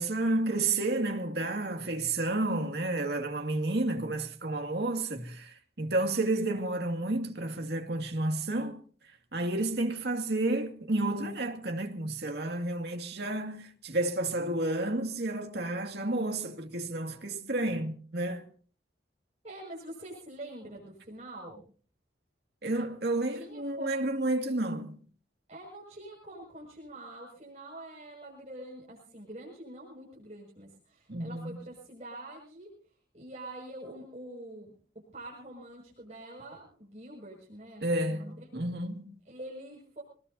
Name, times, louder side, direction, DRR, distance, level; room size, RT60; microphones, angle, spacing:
voice 1, 0.0-8.8 9.3-18.5 22.6-25.0 31.1-31.6 37.8-39.1, right 2 dB, 60° right, 2.3 m, -31 dB
voice 2, 19.4-21.6 23.1-24.1 25.5-32.7 33.1-34.7 35.1-38.5 39.2-40.0, right 1 dB, 40° right, 6.2 m, -45 dB
25.5 x 19.5 x 2.8 m
head